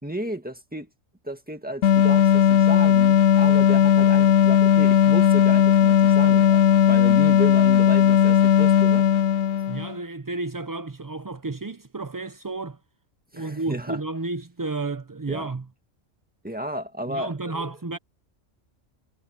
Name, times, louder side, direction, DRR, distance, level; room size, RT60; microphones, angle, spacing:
voice 1, 0.0-0.9 1.2-6.6 6.9-9.0 13.3-14.0 15.3-15.5 16.4-17.7, right 1 dB, 5° right, 1.8 m, -33 dB
sound 1, 1.8-9.9, left 9 dB, 80° left, 1.0 m, -17 dB
voice 2, 9.7-12.8 13.3-15.7 17.1-18.0, right 3 dB, 30° right, 0.4 m, -32 dB
omnidirectional pair, 1.3 m